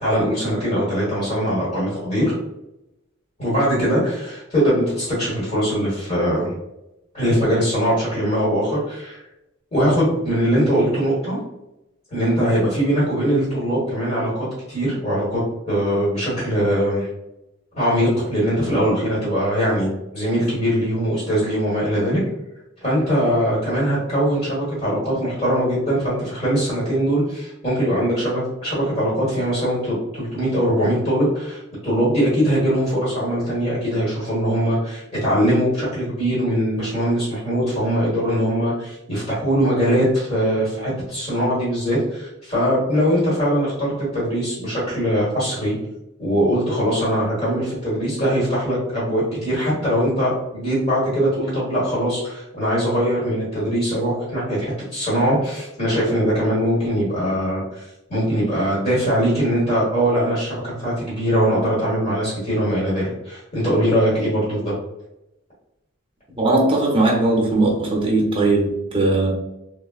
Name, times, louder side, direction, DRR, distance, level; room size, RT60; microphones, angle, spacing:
voice 1, 0.0-2.3 3.4-6.5 7.1-9.2 9.7-11.4 12.1-15.4 15.7-17.1 17.7-22.2 22.8-45.8 46.2-64.8, equal, 30° left, -9 dB, 1.2 m, -21 dB
voice 2, 66.4-69.3, right 2 dB, 25° right, -2 dB, 0.7 m, -19 dB
3.5 x 2.2 x 2.3 m, 0.90 s
head